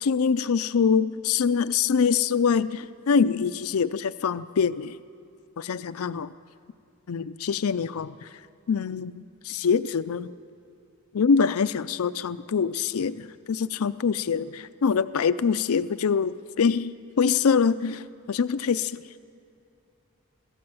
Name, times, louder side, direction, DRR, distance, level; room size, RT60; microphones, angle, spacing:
voice 1, 0.0-5.0 5.6-6.3 7.1-8.3 8.7-10.3 11.1-19.0, left 6 dB, 80° left, 14 dB, 0.5 m, -24 dB
23.5 x 15.5 x 7.8 m, 2.6 s
head